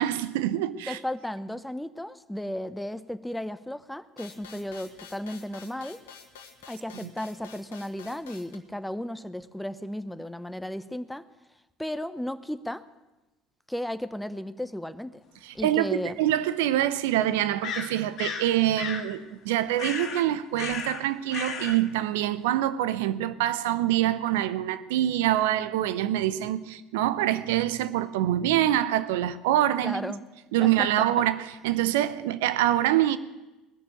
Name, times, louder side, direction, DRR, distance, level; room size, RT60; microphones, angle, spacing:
voice 1, 0.0-1.0 15.4-30.1 30.5-33.2, right 13 dB, 75° right, 0.7 m, -25 dB
voice 2, 0.9-6.0 6.7-11.3 11.8-12.9 13.7-15.2 15.5-16.2 29.8-30.2 30.6-31.2, left 1 dB, 5° left, 0.8 m, -34 dB
sound 1, 4.2-8.6, left 6 dB, 80° left, 1.5 m, -48 dB
sound 2, 15.6-15.7 17.6-18.5 18.8-19.1 19.8-20.2 20.6-21.0 21.3-21.8, left 6 dB, 55° left, 1.9 m, -34 dB
19.5 x 6.9 x 9.0 m
hypercardioid pair, 70°, 0 cm